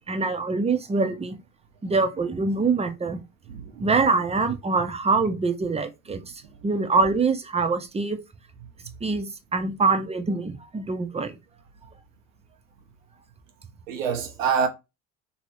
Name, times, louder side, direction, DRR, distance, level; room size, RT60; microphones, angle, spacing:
voice 1, 0.1-1.4 1.8-3.2 3.8-6.2 6.6-8.2 9.0-11.4, right 4 dB, 15° right, 0.6 m, -24 dB
voice 2, 3.5-3.8 13.9-14.7, right 6 dB, 90° right, 0.7 m, -26 dB
3.0 x 2.7 x 2.9 m
hypercardioid pair, 55°, 38 cm